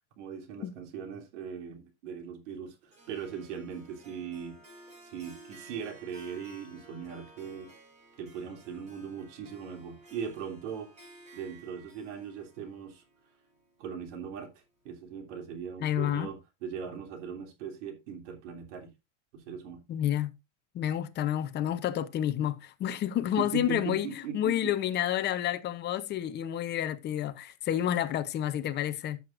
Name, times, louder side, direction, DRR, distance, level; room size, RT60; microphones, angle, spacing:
voice 1, 0.2-4.6 5.0-7.7 8.2-10.9 11.3-13.0 13.8-14.5 14.8-18.9 19.3-19.8 23.4-24.7, right 7 dB, 75° right, 3.1 m, -39 dB
Harp, 2.9-14.1, right 2 dB, 20° right, 5.9 m, -54 dB
voice 2, 15.8-16.3 19.9-20.3 20.7-29.2, left 11 dB, 30° left, 0.8 m, -30 dB
14.0 x 7.7 x 2.5 m
supercardioid pair, 145°, 36 cm